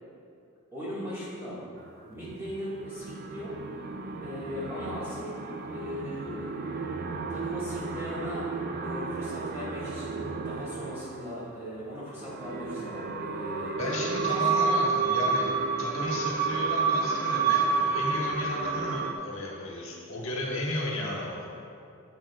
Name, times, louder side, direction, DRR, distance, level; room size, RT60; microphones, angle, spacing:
voice 1, 0.7-1.6 2.0-3.5 4.2-5.3 5.7-6.5 7.3-14.2 14.7-14.8, equal, 10° right, -10 dB, 1.8 m, -38 dB
sound 1, 2.2-11.4 12.1-19.1, right 4 dB, 45° right, 0.4 m, -30 dB
voice 2, 13.8-15.5 15.8-21.5, left 1 dB, 60° left, -3 dB, 1.6 m, -34 dB
9.6 x 8.4 x 2.4 m, 2.5 s
head